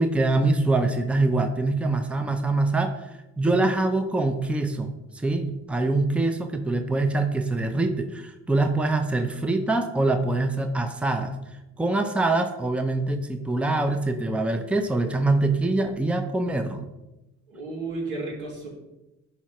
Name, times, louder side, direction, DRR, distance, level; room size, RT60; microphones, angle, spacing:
voice 1, 0.0-4.9 5.2-11.4 11.8-16.9, right 2 dB, 5° right, 6 dB, 0.6 m, -24 dB
voice 2, 17.5-18.7, right 3 dB, 85° right, -4 dB, 2.7 m, -33 dB
11.0 x 4.9 x 3.1 m, 0.97 s
cardioid pair, 90°, 30 cm